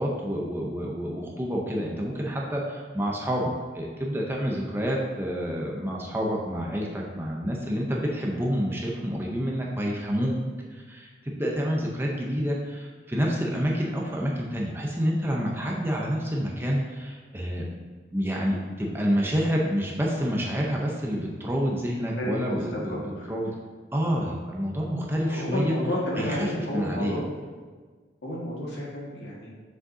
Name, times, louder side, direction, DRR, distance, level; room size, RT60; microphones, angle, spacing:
voice 1, 0.0-17.6 18.1-23.0 23.3-23.5 23.9-25.7 26.2-27.1, equal, 10° right, -2 dB, 0.7 m, -28 dB
voice 2, 22.2-23.3 25.3-27.2 28.2-29.5, equal, 70° left, -4 dB, 1.8 m, -31 dB
7.4 x 6.3 x 2.7 m, 1.5 s
head